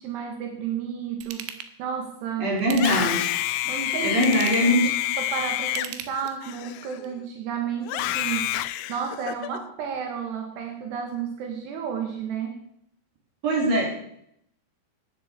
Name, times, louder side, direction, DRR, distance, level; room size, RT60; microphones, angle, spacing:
voice 1, 0.0-1.5 1.8-2.5 3.7-4.2 4.6-4.8 5.2-8.6 8.9-12.6, right 7 dB, 75° right, 3 dB, 3.5 m, -32 dB
Ratchet pawl / Tools, 1.2-1.7 2.6-3.3 4.1-4.8 5.6-6.5 7.0-7.1, right 9 dB, 90° right, 3.3 m, -37 dB
voice 2, 2.4-3.3 4.0-4.9 13.4-13.9, equal, 55° right, -2 dB, 5.8 m, -22 dB
Screaming, 2.7-7.2 7.8-9.6, left 14 dB, 80° left, 2.5 m, -28 dB
11.0 x 10.0 x 7.3 m, 0.72 s
omnidirectional pair, 5.1 m